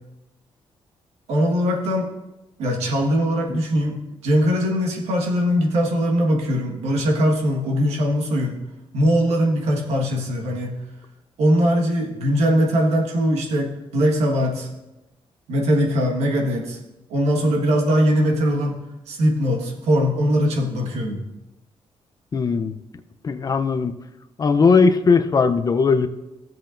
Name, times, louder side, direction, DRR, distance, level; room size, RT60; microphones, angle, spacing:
voice 1, 1.3-2.1 2.6-8.6 8.9-10.7 11.4-14.7 15.5-16.8 17.1-18.8 19.1-21.2, equal, 90° right, 1 dB, 1.5 m, -21 dB
voice 2, 22.3-22.8 23.2-24.0 24.4-26.1, left 5 dB, 35° left, 9 dB, 0.6 m, -18 dB
14.5 x 7.6 x 2.6 m, 0.99 s
cardioid pair, 100°, 11 cm